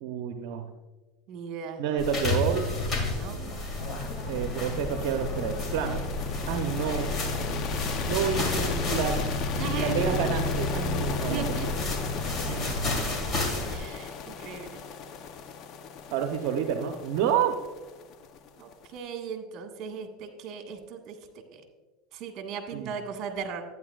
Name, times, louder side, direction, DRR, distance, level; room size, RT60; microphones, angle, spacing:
voice 1, 0.0-0.7 1.8-2.7 3.9-6.0 6.5-7.1 8.1-9.2 9.5-11.6 12.5-13.1 16.1-17.6 22.7-22.9, right 8 dB, 70° right, 4 dB, 0.8 m, -29 dB
voice 2, 1.3-1.8 3.1-3.4 7.4-8.1 9.6-10.2 11.3-11.7 13.7-14.8 18.6-21.1 21.5-21.6 22.1-23.6, right 7 dB, 50° right, 4 dB, 1.7 m, -37 dB
sound 1, 2.0-13.8, left 2 dB, 30° left, 2.3 m, -32 dB
sound 2, 3.7-18.8, left 5 dB, 50° left, 0.8 m, -34 dB
12.0 x 9.5 x 2.4 m, 1.2 s
supercardioid pair, 120°, 0 cm